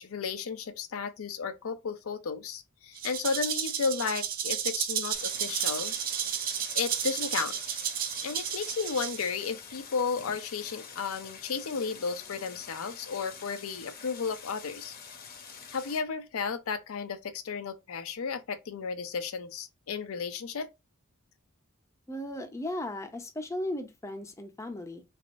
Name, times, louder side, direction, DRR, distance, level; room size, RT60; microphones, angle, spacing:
voice 1, 0.0-6.0 6.7-7.6 8.2-14.9 15.7-20.7, left 5 dB, 80° left, 0.5 m, -33 dB
Rattle (instrument), 3.0-9.5, right 9 dB, 45° right, 0.4 m, -32 dB
Stream, 5.1-16.0, left 6 dB, 45° left, 0.8 m, -46 dB
voice 2, 22.1-25.0, left 1 dB, 15° left, 0.5 m, -36 dB
3.4 x 2.5 x 2.4 m
head